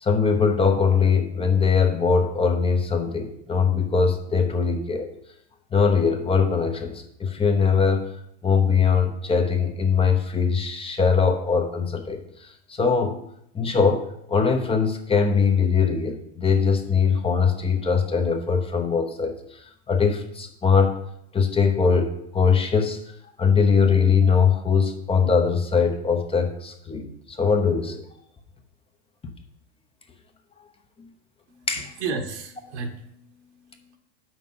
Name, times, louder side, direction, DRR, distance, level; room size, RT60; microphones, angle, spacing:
voice 1, 0.0-5.1 5.7-8.1 8.4-12.2 12.7-13.2 13.5-19.3 19.9-21.0 21.3-23.0 23.4-28.0 31.7-31.9, left 5 dB, 15° left, 4 dB, 0.9 m, -21 dB
voice 2, 31.5-34.0, right 4 dB, 75° right, 5 dB, 1.5 m, -34 dB
6.5 x 6.1 x 5.5 m, 0.73 s
hypercardioid pair, 115°, 34 cm